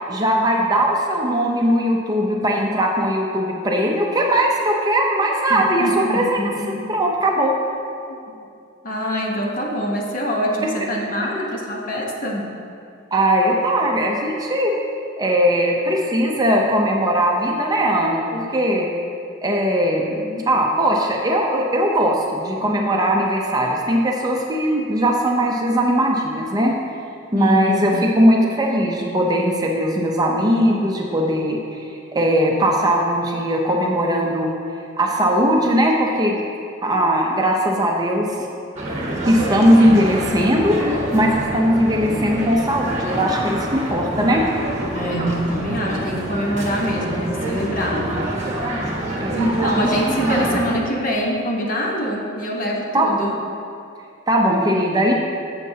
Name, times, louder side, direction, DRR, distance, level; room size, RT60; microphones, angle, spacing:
voice 1, 0.1-6.5 6.9-7.5 13.1-14.8 15.2-18.9 19.4-26.7 27.3-34.5 35.0-36.4 36.8-38.5 39.3-44.4 49.2-49.7 52.9-53.1 54.3-55.1, equal, 20° right, 0 dB, 0.6 m, -19 dB
voice 2, 5.5-6.9 8.1-8.3 8.8-12.5 27.3-28.0 44.9-48.2 49.4-53.4, equal, 45° left, -1 dB, 1.0 m, -25 dB
sound 1, 38.8-50.6, right 1 dB, 35° right, 1.5 m, -26 dB
11.0 x 7.3 x 2.8 m, 2.5 s
head